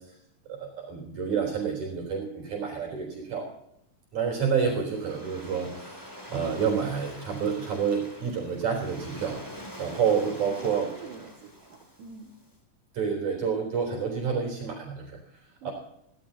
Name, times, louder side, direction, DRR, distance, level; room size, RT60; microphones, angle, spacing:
voice 1, 0.5-3.5 4.1-10.9 12.9-15.2 15.6-15.7, right 6 dB, 60° right, 0 dB, 5.4 m, -29 dB
Waves surf, 4.2-12.5, equal, 5° left, 2.8 m, -45 dB
voice 2, 10.4-12.3 15.6-15.7, right 4 dB, 85° right, -1 dB, 3.6 m, -46 dB
24.0 x 16.5 x 2.9 m, 0.75 s
omnidirectional pair, 3.7 m